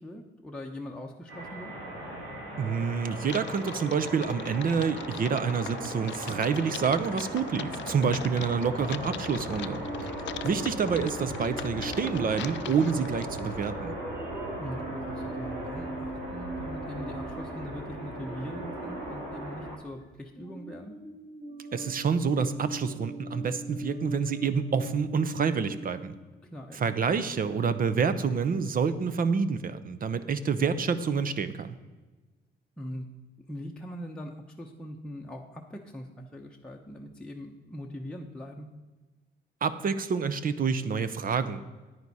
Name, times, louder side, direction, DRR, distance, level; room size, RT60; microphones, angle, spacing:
voice 1, 0.0-1.7 8.3-8.5 14.6-20.9 26.4-26.8 32.8-33.1 33.5-38.7, equal, 5° left, -1 dB, 0.9 m, -41 dB
sound 1, 1.3-19.7, right 1 dB, 90° right, 3.3 m, -38 dB
voice 2, 2.6-9.8 10.4-13.9 21.7-26.1 26.7-31.7 39.6-41.6, right 6 dB, 45° right, 11 dB, 0.7 m, -28 dB
Typing, 3.2-13.7, left 12 dB, 65° left, 0.5 m, -42 dB
sound 2, 9.6-18.9 19.7-20.0 20.4-26.0, right 2 dB, 20° right, 2.0 m, -41 dB
9.6 x 9.5 x 4.2 m, 1.2 s
cardioid pair, 90°, 20 cm